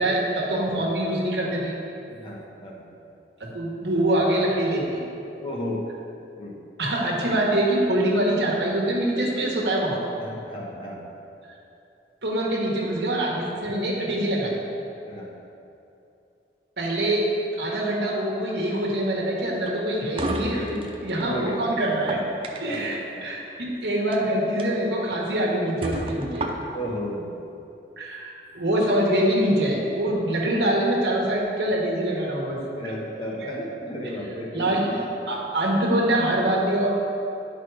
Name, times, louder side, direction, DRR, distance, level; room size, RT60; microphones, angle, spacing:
voice 1, 0.0-1.7 3.4-5.0 6.8-10.0 12.2-14.5 16.8-17.3 17.6-20.6 21.0-22.2 22.6-26.5 28.0-28.3 28.5-32.6 34.5-35.0 35.3-36.9, right 1 dB, 75° right, -3 dB, 1.4 m, -24 dB
voice 2, 2.1-2.9 5.4-5.9 6.4-6.6 10.2-11.1 15.0-15.3 20.4-21.8 22.6-23.3 26.7-27.3 32.8-35.0, equal, 30° left, -3 dB, 1.0 m, -34 dB
sound 1, 19.6-21.3 21.9-23.0 24.0-24.2 24.6-24.7 25.2-25.3 25.8-26.9, right 2 dB, 30° right, 0.5 m, -32 dB
9.9 x 4.1 x 4.8 m, 2.7 s
head